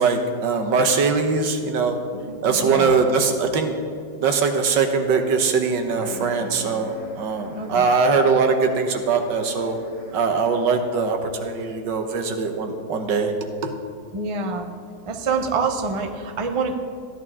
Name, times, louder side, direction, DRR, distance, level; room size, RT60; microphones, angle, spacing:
voice 1, 0.0-2.0 2.4-3.8 4.2-9.8 10.1-13.3 13.6-13.7, right 4 dB, 75° right, 5 dB, 1.7 m, -21 dB
voice 2, 2.3-3.0 7.5-7.9 14.1-14.7 15.1-16.7, right 4 dB, 55° right, 3 dB, 0.3 m, -26 dB
sound 1, 5.9-10.8, left 3 dB, 90° left, 2.8 m, -43 dB
15.0 x 11.0 x 3.6 m, 2.2 s
omnidirectional pair, 1.9 m